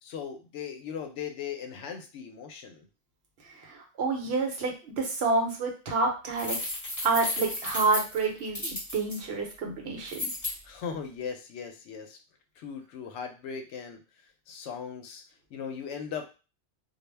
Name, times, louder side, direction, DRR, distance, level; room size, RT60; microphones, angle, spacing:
voice 1, 0.0-2.9 10.6-12.2 12.6-15.2 15.5-16.3, left 7 dB, 80° left, 5 dB, 0.9 m, -38 dB
voice 2, 3.5-6.6 7.0-10.3, right 3 dB, 65° right, 1 dB, 1.0 m, -28 dB
sound 1, 6.3-9.2 10.1-10.5, left 1 dB, 15° left, 0.9 m, -33 dB
2.3 x 2.1 x 3.2 m, 0.33 s
omnidirectional pair, 1.2 m